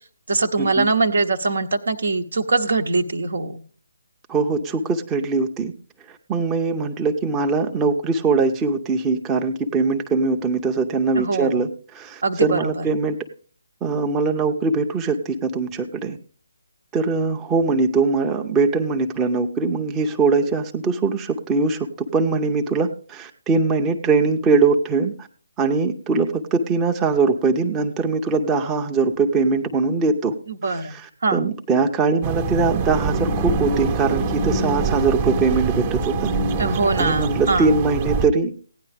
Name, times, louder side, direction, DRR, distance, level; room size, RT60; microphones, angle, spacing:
voice 1, 0.3-3.6 11.2-11.6 12.2-12.8 30.5-31.0 31.2-31.4 36.6-37.7, right 3 dB, 65° right, 10 dB, 1.0 m, -22 dB
voice 2, 4.3-5.7 6.1-13.2 13.8-16.2 16.9-25.3 25.6-30.3 30.6-36.3 36.7-38.5, right 4 dB, 15° right, 4 dB, 0.7 m, -21 dB
sound 1, 32.2-38.3, right 4 dB, 35° right, 1.0 m, -24 dB
16.0 x 9.7 x 3.4 m, 0.42 s
figure-of-eight pair, 145°, 0 cm